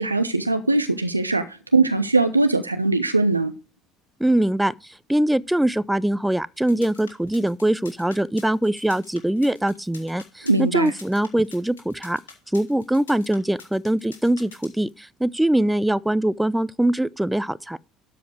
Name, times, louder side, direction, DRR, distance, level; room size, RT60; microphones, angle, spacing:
voice 1, 0.0-3.5 10.4-10.9, right 3 dB, 90° right, 0.5 m, -21 dB
voice 2, 4.2-12.2 12.5-17.8, right 1 dB, 5° right, 0.3 m, -22 dB
sound 1, 6.6-14.9, left 5 dB, 75° left, 1.9 m, -46 dB
12.5 x 5.0 x 4.7 m
figure-of-eight pair, 60°, 0 cm